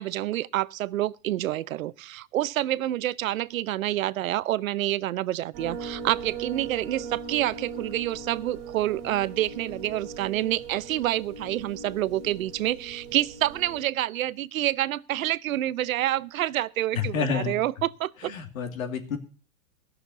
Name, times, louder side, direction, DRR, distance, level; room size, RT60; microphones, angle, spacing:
voice 1, 0.0-18.3, right 14 dB, 75° right, 0.7 m, -28 dB
sound 1, 5.5-13.8, right 5 dB, 30° right, 3.5 m, -39 dB
voice 2, 16.9-17.6 18.2-19.2, left 6 dB, 80° left, 2.6 m, -29 dB
16.5 x 6.5 x 6.9 m
supercardioid pair, 165°, 41 cm